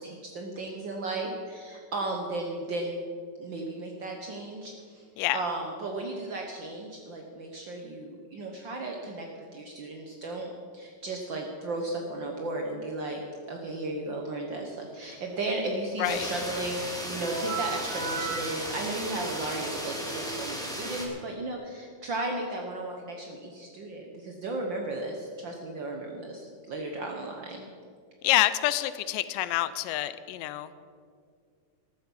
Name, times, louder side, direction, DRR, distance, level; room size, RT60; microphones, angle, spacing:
voice 1, 0.0-3.0 3.4-5.0 5.3-9.3 9.5-10.5 10.7-13.2 13.5-27.7, right 2 dB, 80° right, 1 dB, 1.0 m, -35 dB
sound 1, 16.0-21.1, equal, ahead, 1.4 m, -36 dB
sound 2, 17.2-20.8, right 6 dB, 50° right, 1.6 m, -38 dB
voice 2, 28.2-30.7, left 15 dB, 85° left, 14 dB, 2.2 m, -27 dB
14.5 x 12.5 x 5.4 m, 2.2 s
omnidirectional pair, 3.8 m